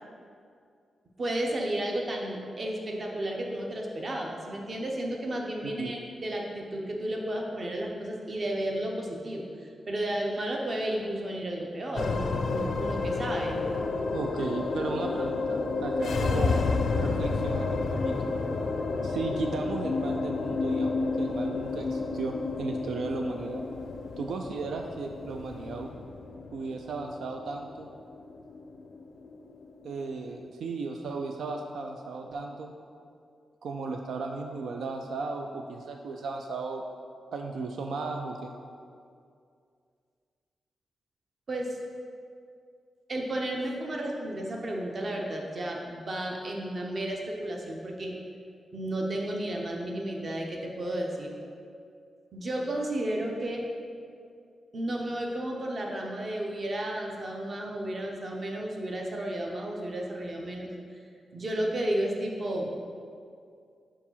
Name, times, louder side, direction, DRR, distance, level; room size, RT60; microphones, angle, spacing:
voice 1, 1.2-13.6 41.5-41.8 43.1-48.1 48.7-51.3 52.3-53.6 54.7-61.0 61.3-62.7, right 1 dB, 30° right, 0 dB, 0.8 m, -33 dB
sound 1, 12.0-30.5, left 3 dB, 55° left, 0.4 m, -31 dB
voice 2, 14.1-16.6 17.0-18.2 19.0-23.6 24.2-25.9 26.5-27.9 29.8-32.7 33.6-36.8 37.3-38.5, right 4 dB, 75° right, 3 dB, 0.4 m, -35 dB
5.0 x 4.8 x 5.5 m, 2.3 s
wide cardioid pair, 175°, 0 cm